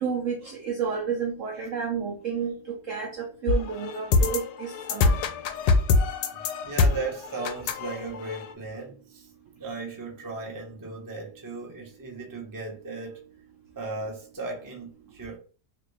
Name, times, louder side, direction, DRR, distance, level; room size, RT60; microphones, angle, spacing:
voice 1, 0.0-5.2, right 6 dB, 70° right, 0.8 m, -31 dB
sound 1, 3.5-8.5, left 4 dB, 85° left, 1.2 m, -24 dB
voice 2, 6.6-9.3 9.6-13.2 13.8-15.4, right 3 dB, 20° right, 0.5 m, -36 dB
3.4 x 2.5 x 3.0 m
omnidirectional pair, 1.8 m